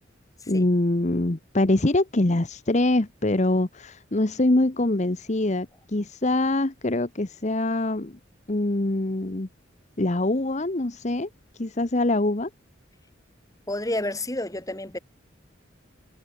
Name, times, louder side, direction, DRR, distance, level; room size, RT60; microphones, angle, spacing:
voice 1, 0.5-8.2 8.5-9.5 10.0-11.3 11.5-12.5, left 2 dB, 35° left, 1.0 m, -24 dB
voice 2, 13.7-15.0, left 1 dB, 15° left, 2.9 m, -29 dB
head